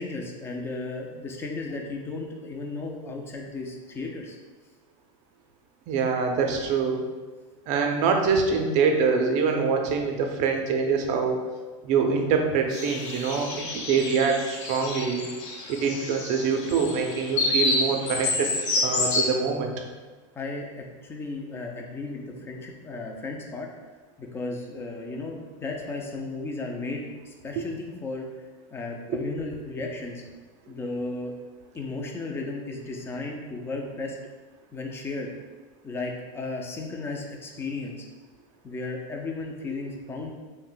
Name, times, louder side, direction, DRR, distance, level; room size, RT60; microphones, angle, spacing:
voice 1, 0.0-4.4 20.4-23.7 24.2-28.3 28.7-30.2 30.7-31.3 31.7-34.2 34.7-35.3 35.8-38.1 38.6-40.3, left 3 dB, 15° left, 1 dB, 0.4 m, -34 dB
voice 2, 5.9-7.0 7.7-11.4 11.8-15.2 15.7-18.5 18.8-19.7 29.1-29.2, right 5 dB, 45° right, 3 dB, 0.5 m, -24 dB
sound 1, 12.7-19.3, left 2 dB, 70° left, 0.7 m, -29 dB
2.5 x 2.1 x 3.8 m, 1.3 s
supercardioid pair, 130°, 17 cm